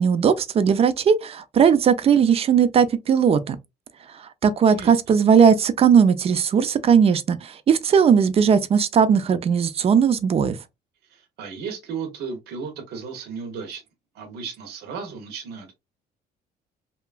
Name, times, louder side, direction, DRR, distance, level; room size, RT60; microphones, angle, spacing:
voice 1, 0.0-3.6 4.4-10.6, right 7 dB, 35° right, 0.4 m, -18 dB
voice 2, 11.1-13.8 14.1-15.7, right 5 dB, 75° right, 0.8 m, -34 dB
2.8 x 2.3 x 2.3 m
cardioid pair, 110°, 17 cm